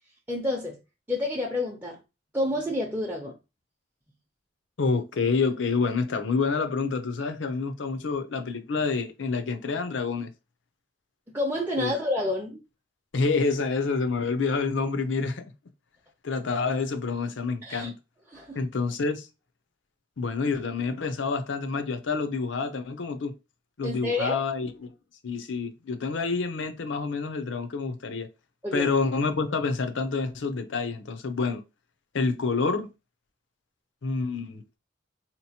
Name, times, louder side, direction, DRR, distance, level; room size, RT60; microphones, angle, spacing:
voice 1, 0.3-0.8 1.1-2.0 2.3-3.4 11.3-12.6 17.6-17.9 18.3-18.6 23.8-24.4 28.6-28.9, left 1 dB, 10° right, 0.6 m, -29 dB
voice 2, 4.8-10.3 11.8-11.9 13.1-15.5 16.2-17.9 18.5-19.3 20.2-23.3 23.8-24.9 25.2-28.3 28.7-31.6 32.1-32.9 34.0-34.6, left 4 dB, 85° left, 0.6 m, -28 dB
4.0 x 2.9 x 2.8 m
head